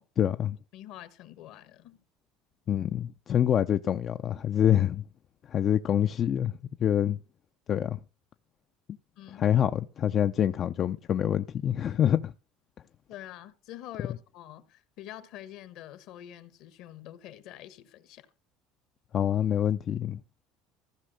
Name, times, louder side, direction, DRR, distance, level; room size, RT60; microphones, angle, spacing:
voice 1, 0.2-0.6 2.7-5.0 5.4-7.2 7.7-8.0 9.3-12.3 19.1-20.2, left 10 dB, 40° left, 0.4 m, -26 dB
voice 2, 0.7-2.0 9.2-9.4 13.1-18.3, left 12 dB, 65° left, 1.3 m, -46 dB
15.0 x 5.3 x 6.5 m
supercardioid pair, 110°, 0 cm